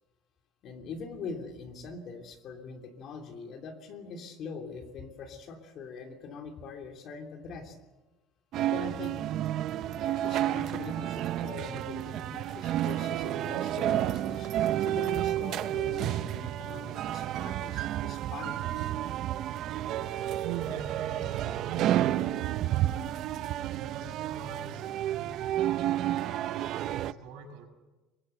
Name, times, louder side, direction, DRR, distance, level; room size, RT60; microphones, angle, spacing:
voice 1, 0.6-7.8 8.6-9.2 9.9-18.9, left 4 dB, 40° left, 5 dB, 3.0 m, -42 dB
sound 1, 8.5-27.1, right 12 dB, 45° right, 0.7 m, -31 dB
voice 2, 20.4-23.2 23.7-27.7, right 8 dB, 75° right, 4 dB, 6.0 m, -43 dB
23.5 x 23.0 x 8.0 m, 1.1 s
cardioid pair, 165°, 0 cm